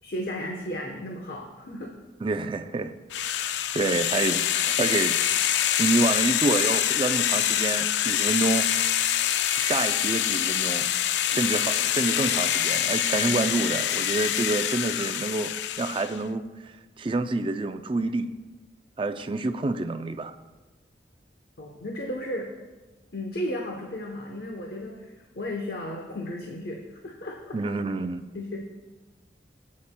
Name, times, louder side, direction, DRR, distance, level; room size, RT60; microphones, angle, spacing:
voice 1, 0.0-2.0 21.6-22.5 23.1-27.5 28.3-28.6, left 1 dB, 60° left, 1 dB, 0.9 m, -34 dB
voice 2, 2.2-2.9 3.2-3.3 3.7-5.2 5.8-8.7 9.6-10.9 11.3-18.3 19.0-20.3 27.5-28.3, right 3 dB, 30° right, 9 dB, 0.4 m, -28 dB
sound 1, 3.1-16.2, left 11 dB, 80° left, 0.4 m, -25 dB
16.0 x 8.5 x 2.2 m, 1.2 s
head